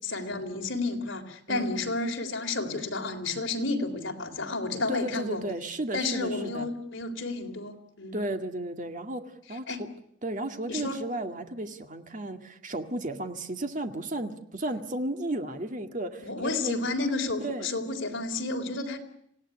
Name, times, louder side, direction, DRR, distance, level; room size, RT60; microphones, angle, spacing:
voice 1, 0.0-5.4 5.9-8.2 9.7-9.8 10.7-11.0 16.2-19.0, left 3 dB, 70° left, 4 dB, 3.6 m, -31 dB
voice 2, 4.9-6.7 8.1-9.2 9.5-9.9 10.2-16.8 17.4-17.8, right 1 dB, 40° right, 6 dB, 2.0 m, -34 dB
26.5 x 17.5 x 9.8 m, 0.74 s
head